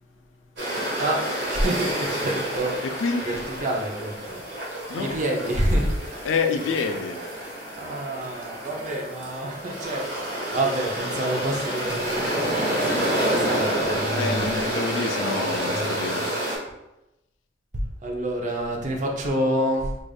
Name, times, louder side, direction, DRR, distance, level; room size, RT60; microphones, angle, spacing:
sound 1, 0.6-16.6, right 1 dB, 55° right, 1.3 m, -29 dB
voice 1, 1.0-4.5 5.0-6.0 7.8-14.5 15.3-16.3 17.7-20.0, right 1 dB, 40° right, 1 dB, 0.5 m, -28 dB
voice 2, 2.8-3.4 4.9-5.2 6.2-7.2 14.2-16.3, left 4 dB, 75° left, 6 dB, 0.4 m, -27 dB
4.9 x 2.5 x 2.3 m, 0.92 s
head